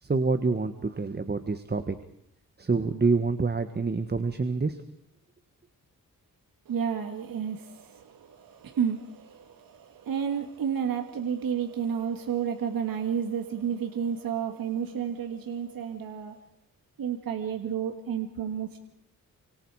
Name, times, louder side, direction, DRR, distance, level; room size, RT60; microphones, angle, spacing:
voice 1, 0.0-2.0 2.6-4.8, right 4 dB, 30° right, 9 dB, 1.6 m, -27 dB
voice 2, 6.7-16.4 17.0-18.8, right 8 dB, 80° right, 4 dB, 2.0 m, -31 dB
29.5 x 26.0 x 5.0 m, 0.76 s
cardioid pair, 80°, 34 cm